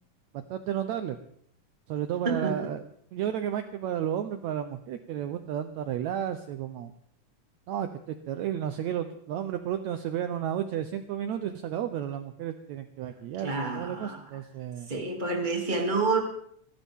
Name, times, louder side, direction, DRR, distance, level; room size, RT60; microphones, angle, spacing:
voice 1, 0.3-1.2 1.9-2.8 3.1-6.9 7.7-14.9, right 10 dB, 75° right, 8 dB, 1.9 m, -32 dB
voice 2, 2.2-2.6 13.4-14.2 14.9-16.2, right 3 dB, 15° right, 2 dB, 2.3 m, -28 dB
22.0 x 17.0 x 3.6 m, 0.66 s
omnidirectional pair, 3.7 m